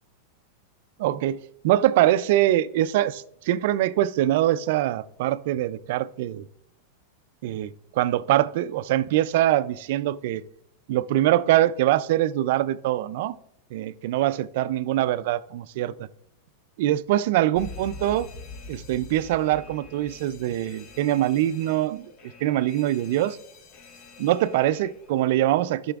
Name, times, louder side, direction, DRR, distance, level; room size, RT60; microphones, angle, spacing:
voice 1, 1.0-1.4 1.6-6.4 7.4-10.4 10.9-13.4 13.7-16.1 16.8-18.3 18.7-22.1 22.4-23.4 24.2-25.9, right 13 dB, 60° right, 16 dB, 0.4 m, -23 dB
Alarm, 17.6-25.3, left 4 dB, 35° left, 0.8 m, -45 dB
13.5 x 6.0 x 2.4 m, 0.71 s
supercardioid pair, 155°, 0 cm